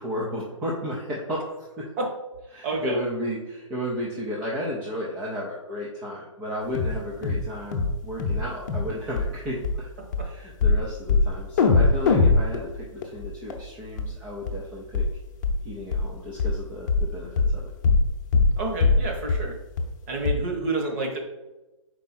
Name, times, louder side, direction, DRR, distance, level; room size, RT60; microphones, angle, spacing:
voice 1, 0.0-1.9 2.5-9.9 10.2-15.1 15.6-17.7, equal, 10° right, -4 dB, 0.4 m, -33 dB
voice 2, 2.6-3.0 18.5-19.6 20.1-21.2, right 2 dB, 25° right, 1 dB, 1.0 m, -29 dB
sound 1, 6.7-7.0 7.2-7.5 7.7-8.4 8.7-8.9 9.2-9.3 9.6-9.8 10.1-10.2 10.6-10.8 11.1-11.3 11.6-13.6 14.0-14.1 14.5-14.6 14.9-15.1 15.4-15.6 15.9-16.1 16.4-16.6 16.9-17.1 17.4-17.6 17.8-18.1 18.3-18.6 18.8-19.0 19.3-19.4 19.8-19.9 20.3-20.4, left 4 dB, 35° left, 0.8 m, -21 dB
5.3 x 4.7 x 4.2 m, 1.1 s
hypercardioid pair, 160°, 17 cm